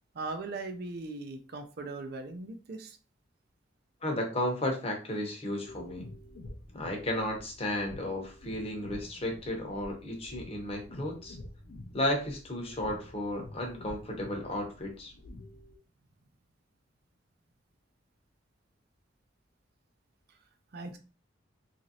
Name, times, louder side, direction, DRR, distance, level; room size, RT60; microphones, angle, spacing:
voice 1, 0.1-3.0 20.3-20.4 20.7-21.0, right 3 dB, 55° right, 6 dB, 0.5 m, -39 dB
voice 2, 4.0-6.1 6.7-11.4 11.9-15.1, left 1 dB, 30° left, 2 dB, 0.8 m, -33 dB
sound 1, 5.7-15.8, left 1 dB, 60° left, 0.4 m, -48 dB
3.0 x 2.5 x 2.7 m, 0.35 s
head